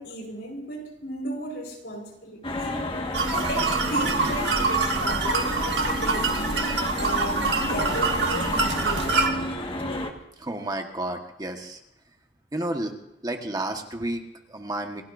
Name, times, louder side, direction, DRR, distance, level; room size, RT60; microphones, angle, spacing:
voice 1, 0.0-2.7 3.3-6.3 7.0-9.4, equal, 75° left, 1 dB, 5.0 m, -34 dB
sound 1, 2.4-10.1, left 1 dB, 30° left, 1.7 m, -31 dB
sound 2, 3.1-9.3, right 3 dB, 80° right, 2.0 m, -25 dB
voice 2, 10.4-11.8 12.5-12.9 13.2-15.0, right 1 dB, 25° right, 4 dB, 1.5 m, -31 dB
27.5 x 17.5 x 2.7 m, 0.87 s
head